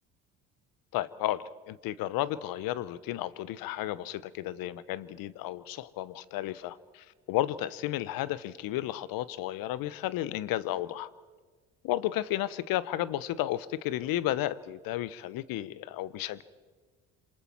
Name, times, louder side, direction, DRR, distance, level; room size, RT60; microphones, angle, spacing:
voice 1, 0.9-11.1 11.8-16.4, left 14 dB, 65° left, 18 dB, 1.0 m, -33 dB
27.5 x 26.5 x 4.6 m, 1.4 s
hypercardioid pair, 60°, 37 cm